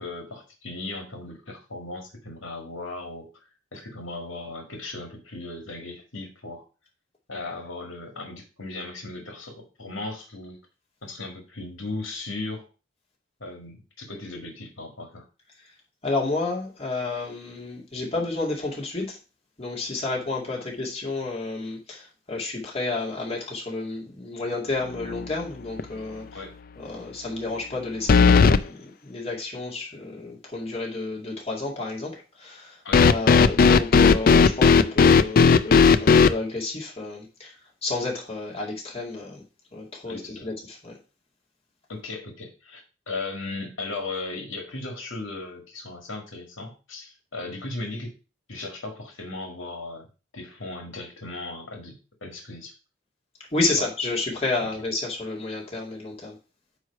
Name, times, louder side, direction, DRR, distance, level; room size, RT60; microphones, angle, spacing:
voice 1, 0.0-3.4 3.7-6.6 7.3-10.6 11.0-12.7 13.4-15.2 20.6-20.7 26.3-26.5 32.8-33.0 40.1-40.5 41.9-42.8 43.1-48.1 48.5-50.1 50.3-52.7 53.8-53.9 54.6-54.7, left 2 dB, 75° left, 3 dB, 1.8 m, -37 dB
voice 2, 16.0-19.2 19.6-26.3 26.8-32.8 33.1-37.5 37.8-39.4 39.7-41.0 53.5-56.4, left 3 dB, 30° left, -2 dB, 2.3 m, -31 dB
sound 1, 25.0-25.4 25.8-25.9 28.1-28.6 32.9-36.3, left 5 dB, 45° left, 0.4 m, -15 dB
9.2 x 3.2 x 5.7 m, 0.31 s
head